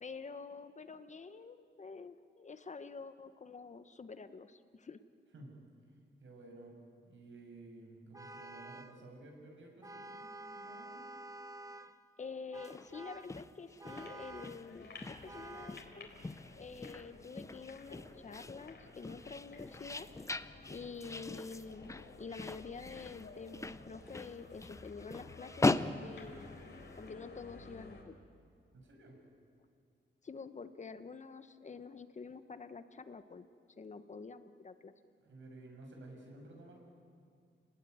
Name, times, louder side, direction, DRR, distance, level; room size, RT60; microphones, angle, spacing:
voice 1, 0.0-5.0 12.2-16.1 16.6-20.1 20.7-21.9 22.2-26.5 27.0-28.2 30.2-33.4 33.8-34.9, left 4 dB, 35° left, 11 dB, 1.0 m, -48 dB
voice 2, 6.2-6.8 7.0-11.1 28.7-29.2 35.2-36.8, right 2 dB, 85° right, 1 dB, 6.8 m, -53 dB
Vehicle horn car horn honking, 8.1-9.0 9.8-12.0 12.5-13.4 13.8-14.6 15.3-15.9, right 2 dB, 15° right, 0.8 m, -49 dB
sound 1, 12.5-27.0, left 2 dB, 15° left, 0.6 m, -40 dB
sound 2, 13.9-28.0, left 3 dB, 60° left, 4.0 m, -54 dB
29.5 x 20.0 x 9.5 m, 2.3 s
wide cardioid pair, 155°, 20 cm